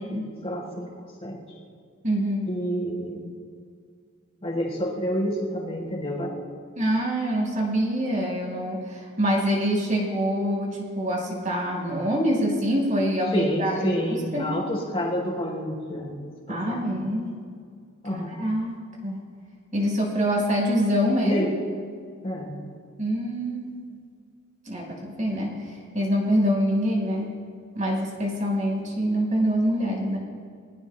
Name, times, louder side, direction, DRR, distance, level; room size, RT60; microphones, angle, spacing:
voice 1, 0.1-0.9 1.2-1.4 2.5-3.3 4.4-6.4 13.3-16.2 16.5-17.0 18.0-18.3 21.2-21.5 22.2-22.6, equal, 30° left, -3 dB, 3.9 m, -29 dB
voice 2, 2.0-2.5 6.7-14.5 16.5-17.3 18.1-18.8 19.0-19.2 19.7-21.4 23.0-23.9 24.7-27.3 27.7-30.2, equal, 35° right, -2 dB, 4.7 m, -25 dB
27.5 x 21.5 x 2.2 m, 2.1 s
head